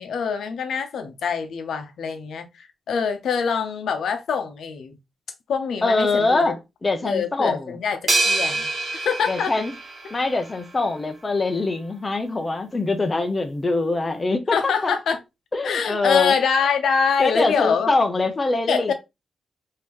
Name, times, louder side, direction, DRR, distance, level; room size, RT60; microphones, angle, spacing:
voice 1, 0.0-5.0 5.5-6.5 7.0-9.5 14.5-15.2 15.6-17.9 18.7-18.9, left 6 dB, 75° left, 0.7 m, -24 dB
voice 2, 5.8-7.8 9.3-9.7 10.1-14.9 15.5-16.3 17.2-18.9, left 3 dB, 20° left, 0.5 m, -23 dB
sound 1, 8.1-10.6, right 2 dB, 35° right, 1.2 m, -25 dB
3.5 x 2.7 x 3.0 m
wide cardioid pair, 160°, 0 cm